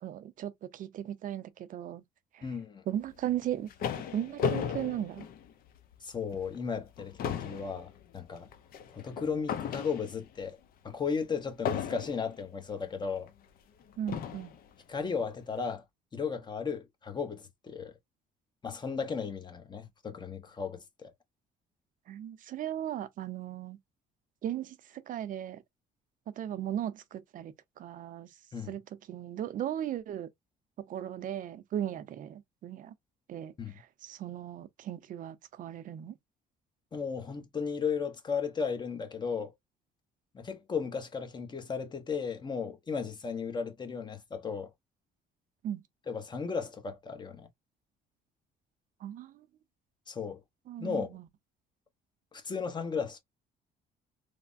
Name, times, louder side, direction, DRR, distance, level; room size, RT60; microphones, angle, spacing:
voice 1, 0.0-2.0 2.3-2.4 2.9-3.7 4.1-5.3 14.0-14.5 22.1-23.8 24.4-25.6 26.3-28.3 28.7-28.8 29.1-30.3 30.9-32.9 33.3-36.1 45.6-45.8 49.0-49.5 50.7-51.3, right 11 dB, 55° right, 0.5 m, -37 dB
voice 2, 2.4-2.8 6.0-8.5 8.9-10.6 10.8-13.3 14.9-15.8 16.1-17.9 18.6-21.1 28.5-28.7 33.6-33.7 36.9-39.5 40.3-44.7 46.1-47.5 50.1-50.4 50.8-51.2 52.3-53.2, left 6 dB, 25° left, 0.8 m, -35 dB
sound 1, 3.3-5.9 6.4-6.6 6.9-10.4 11.7-12.4 13.3-13.4 14.1-14.6, left 7 dB, 60° left, 0.6 m, -35 dB
3.2 x 2.1 x 2.5 m
cardioid pair, 110°, 17 cm